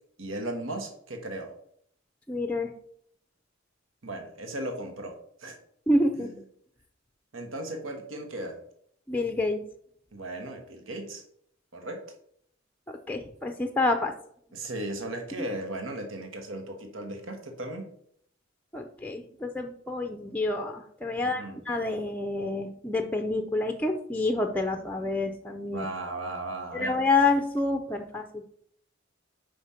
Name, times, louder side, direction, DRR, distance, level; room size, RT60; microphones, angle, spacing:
voice 1, 0.2-1.5 4.0-5.6 6.2-6.3 7.3-8.6 10.1-11.2 11.7-12.0 14.5-17.9 21.2-21.6 25.7-27.0, right 1 dB, 85° right, 4 dB, 1.2 m, -36 dB
voice 2, 2.3-2.7 5.9-6.3 9.1-9.6 12.9-14.1 18.7-25.9 26.7-28.5, left 2 dB, 10° left, 5 dB, 0.5 m, -28 dB
5.1 x 4.9 x 5.6 m, 0.66 s
head